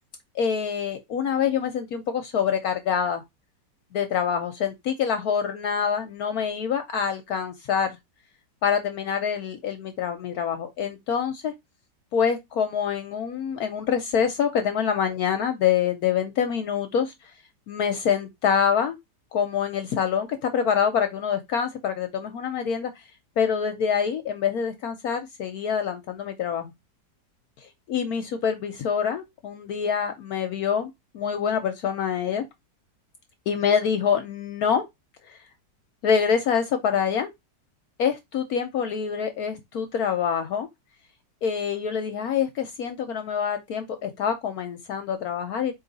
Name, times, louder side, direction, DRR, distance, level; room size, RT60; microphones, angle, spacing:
voice 1, 0.3-3.2 3.9-8.0 8.6-11.5 12.1-17.1 17.7-19.0 19.3-23.0 23.4-26.7 27.9-32.4 33.5-34.8 35.3-35.4 36.0-37.3 38.0-40.7 41.4-45.7, left 7 dB, 65° left, 1.0 m, -26 dB
4.7 x 2.9 x 3.9 m
omnidirectional pair, 1.9 m